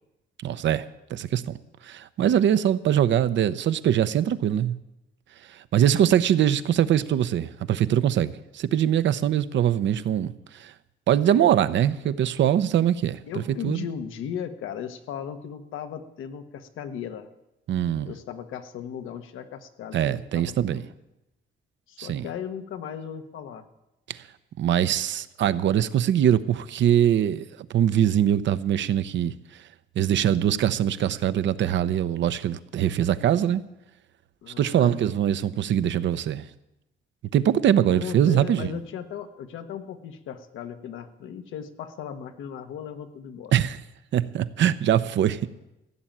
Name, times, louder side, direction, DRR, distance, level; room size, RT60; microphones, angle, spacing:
voice 1, 0.4-1.6 1.8-4.7 5.7-10.7 11.1-13.9 17.7-18.1 19.9-20.8 22.0-22.3 24.1-24.2 24.6-27.4 27.7-29.3 30.0-33.6 34.6-36.4 37.3-38.8 43.5-43.8 44.1-45.5, right 10 dB, 70° right, 0.8 m, -22 dB
voice 2, 13.3-17.3 18.0-20.9 21.9-23.7 34.4-35.0 37.9-43.6, left 8 dB, 85° left, 1.2 m, -37 dB
15.5 x 7.2 x 9.0 m
cardioid pair, 90°, 20 cm